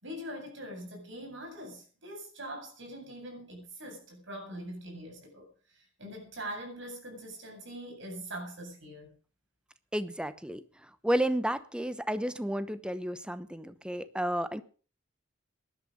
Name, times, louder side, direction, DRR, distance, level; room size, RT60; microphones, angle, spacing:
voice 1, 0.0-5.5 5.7-9.1, right 1 dB, 70° right, 7.8 m, -43 dB
voice 2, 9.9-10.6 11.0-14.6, right 1 dB, 5° right, 0.9 m, -31 dB
18.0 x 11.5 x 5.3 m
head